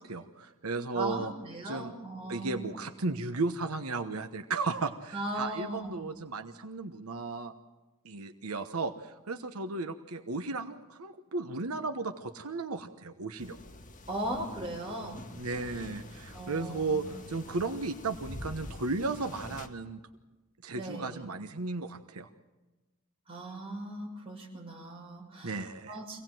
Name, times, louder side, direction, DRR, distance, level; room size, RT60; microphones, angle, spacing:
voice 1, 0.0-1.3 1.6-1.9 2.3-7.5 8.0-13.6 15.4-20.0 20.6-22.3 25.4-26.0, right 3 dB, 85° right, 7 dB, 1.1 m, -35 dB
voice 2, 0.9-2.6 5.1-6.1 14.1-15.2 16.3-17.2 20.7-21.2 23.3-25.6 25.9-26.2, right 1 dB, 25° right, -1 dB, 6.2 m, -38 dB
sound 1, 13.4-19.7, left 1 dB, 35° left, 1.9 m, -46 dB
25.5 x 18.0 x 7.7 m, 1.2 s
head